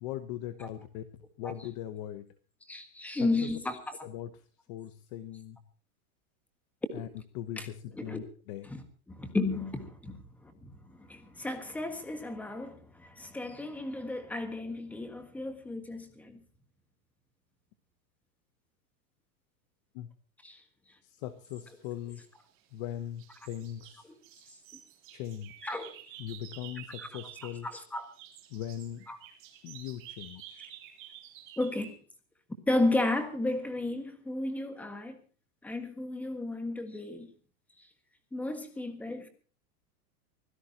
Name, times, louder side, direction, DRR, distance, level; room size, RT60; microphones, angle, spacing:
voice 1, 0.0-2.3 3.2-3.5 4.0-4.3 4.7-5.6 6.9-7.1 7.3-8.7 19.9-20.1 21.0-22.2 22.7-24.1 25.1-25.7 26.2-27.7 28.5-29.1 29.6-30.7, left 11 dB, 30° left, 0.8 m, -40 dB
voice 2, 2.7-3.8 7.6-7.7 8.0-8.2 8.6-8.8 9.1-16.4 20.4-20.6 25.6-25.9 27.0-27.1 27.6-28.1 29.1-29.2 31.6-31.9 32.7-35.2 35.6-37.3 38.3-39.3, left 2 dB, 5° left, 1.5 m, -33 dB
sound 1, 22.0-22.9 23.2-27.7 27.9-32.0, right 11 dB, 30° right, 3.4 m, -50 dB
24.5 x 16.0 x 2.8 m
supercardioid pair, 175°, 44 cm